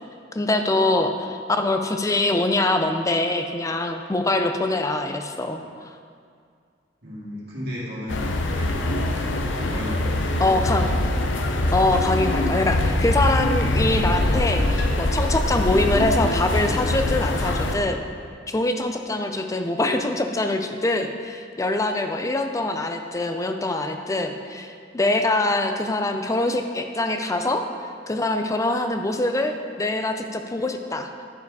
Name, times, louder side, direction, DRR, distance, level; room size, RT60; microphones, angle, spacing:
voice 1, 0.3-5.9 10.4-10.9 11.7-18.0 18.5-27.6 28.1-31.1, left 2 dB, 15° left, 6 dB, 0.4 m, -24 dB
voice 2, 7.0-9.0 9.6-10.6, equal, 55° right, -6 dB, 2.2 m, -34 dB
sound 1, 8.1-17.7, left 1 dB, 75° left, 0.6 m, -23 dB
10.5 x 4.7 x 4.7 m, 2.2 s
head